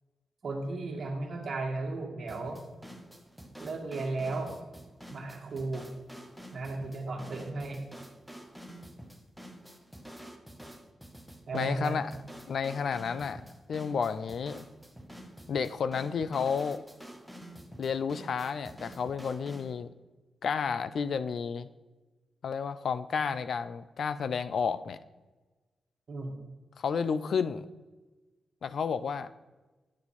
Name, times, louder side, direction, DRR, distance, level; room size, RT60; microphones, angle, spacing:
voice 1, 0.4-2.6 3.6-4.5 5.1-5.9 6.5-7.9 11.5-12.0 26.1-26.3, right 3 dB, 50° right, 2 dB, 1.7 m, -35 dB
sound 1, 2.3-19.7, equal, ahead, 0.8 m, -48 dB
voice 2, 11.5-12.1 12.5-13.4 13.7-14.7 15.5-16.8 17.8-19.9 20.4-21.7 22.4-25.0 26.8-27.7 28.6-29.3, left 6 dB, 60° left, 14 dB, 0.4 m, -31 dB
9.6 x 7.0 x 4.2 m, 1.2 s
wide cardioid pair, 145°, 0 cm